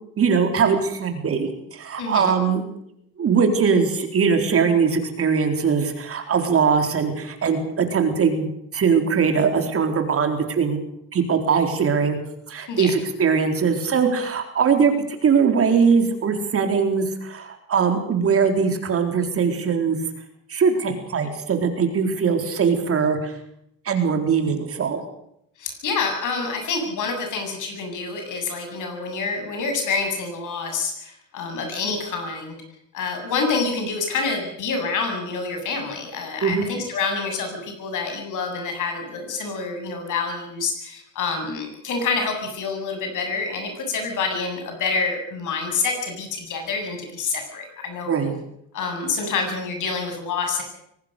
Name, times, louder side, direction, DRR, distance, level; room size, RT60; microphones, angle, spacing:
voice 1, 0.2-2.6 3.2-10.8 11.1-12.2 12.5-14.9 15.2-20.0 20.5-23.4 23.8-25.0 36.4-36.7 48.1-48.4, right 6 dB, 40° right, 5 dB, 4.1 m, -21 dB
voice 2, 2.0-2.3 12.7-12.9 25.6-32.5 32.9-48.2 48.7-50.6, left 4 dB, 55° left, 5 dB, 8.0 m, -27 dB
24.0 x 18.5 x 6.7 m, 0.74 s
cardioid pair, 125°, 36 cm